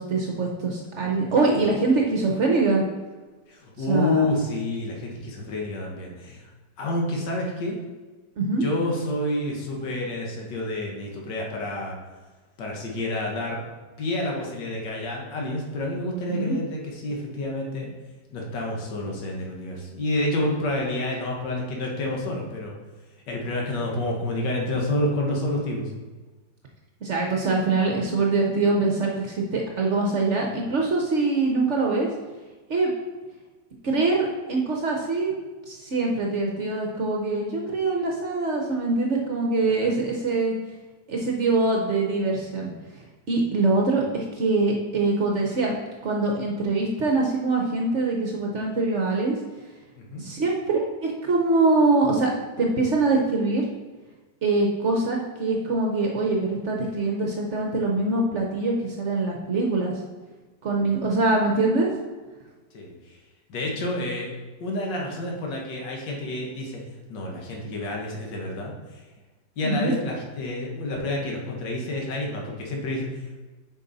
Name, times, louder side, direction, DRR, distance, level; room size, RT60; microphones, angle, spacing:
voice 1, 0.0-2.8 3.9-4.3 8.4-8.6 16.3-16.6 27.0-32.1 32.7-32.9 33.8-35.3 35.7-40.5 41.1-42.7 43.3-45.8 46.0-49.3 50.2-52.3 52.6-53.6 54.4-59.9 60.6-61.9 69.6-69.9, right 3 dB, 55° right, 0 dB, 0.9 m, -23 dB
voice 2, 3.5-6.5 6.8-7.8 8.5-12.0 12.6-13.6 14.0-17.9 18.3-22.7 23.3-25.9 50.0-50.2 62.7-63.2 63.5-64.3 64.6-66.8 67.1-69.0 69.6-73.4, left 1 dB, 80° left, -1 dB, 1.9 m, -29 dB
6.7 x 5.3 x 4.0 m, 1.3 s
omnidirectional pair, 1.9 m